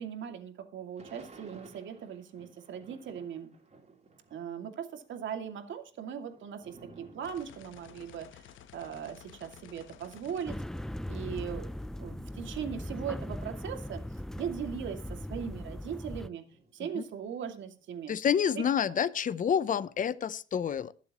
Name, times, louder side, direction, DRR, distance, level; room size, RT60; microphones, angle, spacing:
voice 1, 0.0-3.5 4.3-10.6 11.1-14.0 14.4-16.4 16.7-18.1 18.9-19.0, right 8 dB, 70° right, 5 dB, 2.5 m, -39 dB
Thunder / Rain, 1.0-4.6 4.9-12.0 12.6-12.7 12.9-16.0 16.4-18.1, right 3 dB, 35° right, 3.6 m, -58 dB
sound 1, 7.2-11.4, left 10 dB, 80° left, 1.1 m, -54 dB
sound 2, 10.5-16.3, left 1 dB, 5° left, 0.4 m, -39 dB
voice 2, 18.1-20.9, left 8 dB, 40° left, 15 dB, 0.7 m, -28 dB
21.5 x 7.5 x 3.0 m, 0.37 s
cardioid pair, 90°, 20 cm